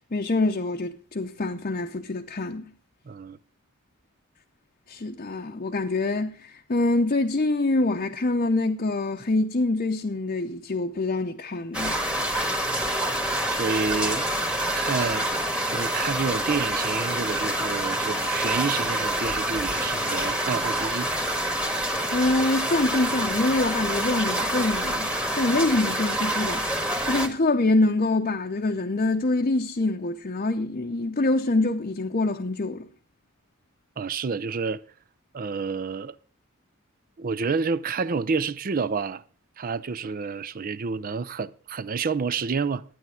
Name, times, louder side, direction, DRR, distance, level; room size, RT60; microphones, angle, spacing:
voice 1, 0.1-2.7 4.9-12.0 22.1-32.9, left 2 dB, 40° left, 0.7 m, -25 dB
voice 2, 3.1-3.4 13.5-14.3 14.7-15.3 15.7-21.1 34.0-34.8 35.3-36.2 37.2-39.2 39.6-42.8, right 5 dB, 40° right, 0.5 m, -29 dB
sound 1, 11.7-27.3, right 1 dB, 5° right, 1.5 m, -27 dB
12.0 x 9.4 x 5.7 m
head